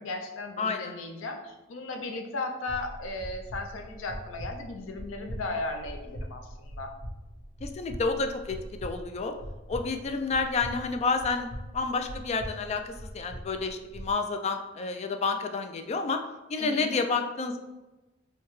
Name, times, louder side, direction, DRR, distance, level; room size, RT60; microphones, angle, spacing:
voice 1, 0.0-6.9 16.6-16.9, left 2 dB, 90° left, 5 dB, 0.5 m, -36 dB
voice 2, 0.6-0.9 7.6-9.3 9.7-11.5 11.7-16.2 16.5-17.6, left 4 dB, 35° left, 6 dB, 0.3 m, -29 dB
sound 1, 2.7-14.1, equal, 40° right, 1.2 m, -42 dB
4.5 x 2.3 x 3.1 m, 1.1 s
head